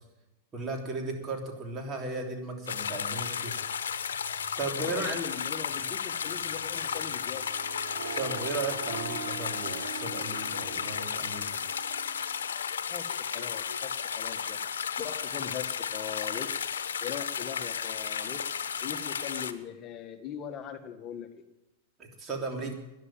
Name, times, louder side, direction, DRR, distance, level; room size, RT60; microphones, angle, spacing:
voice 1, 0.5-3.5 4.6-5.2 8.1-11.6 22.0-22.7, right 3 dB, 30° right, 2 dB, 3.3 m, -35 dB
sound 1, 2.7-19.5, left 7 dB, 90° left, 0.9 m, -34 dB
Car / Engine starting, 3.1-9.9, right 4 dB, 70° right, 4.8 m, -56 dB
voice 2, 4.8-7.5 12.9-14.6 15.0-16.5 17.0-18.5 18.8-21.3, left 8 dB, 30° left, 6 dB, 1.5 m, -40 dB
Harp, 7.2-12.4, right 8 dB, 85° right, 2.2 m, -43 dB
12.0 x 10.5 x 8.8 m, 0.97 s
hypercardioid pair, 120°, 0 cm